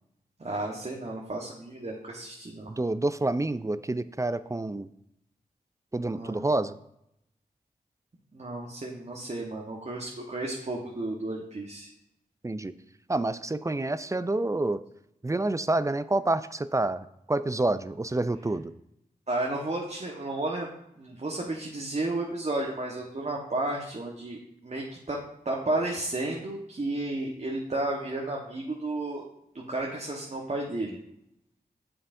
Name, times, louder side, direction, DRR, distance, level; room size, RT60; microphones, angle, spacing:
voice 1, 0.4-2.7 6.1-6.4 8.3-11.9 19.3-20.7 21.0-24.4 24.6-25.2 25.4-29.2 29.5-31.0, right 2 dB, 45° right, -2 dB, 1.2 m, -32 dB
voice 2, 2.7-4.9 5.9-6.8 12.4-12.7 13.1-14.8 15.2-18.7, right 2 dB, 20° right, 14 dB, 0.4 m, -28 dB
8.8 x 7.0 x 2.6 m, 0.79 s
cardioid pair, 40°, 16 cm